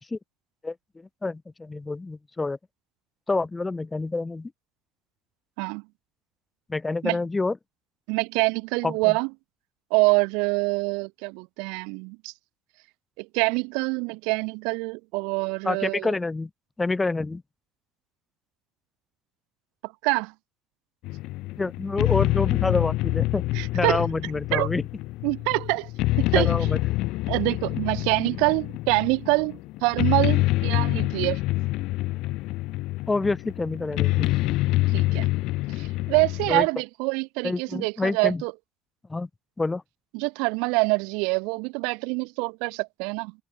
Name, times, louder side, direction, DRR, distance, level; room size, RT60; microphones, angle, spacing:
voice 1, 0.6-2.6 3.3-4.5 6.7-7.6 8.8-9.1 15.6-16.5 16.8-17.4 21.6-23.4 23.7-24.8 26.3-26.8 33.1-34.3 36.5-36.7 37.4-38.4 39.1-39.3 39.6-39.8, left 3 dB, 15° left, 1.6 m, -27 dB
voice 2, 8.1-9.3 9.9-12.3 13.2-16.1 19.8-20.3 23.5-24.0 24.5-24.7 25.2-25.9 26.2-26.5 27.3-31.4 34.9-35.3 35.7-38.5 40.1-43.3, right 32 dB, 75° right, 3.5 m, -25 dB
sound 1, 21.0-36.7, left 19 dB, 70° left, 0.7 m, -26 dB
supercardioid pair, 85°, 0 cm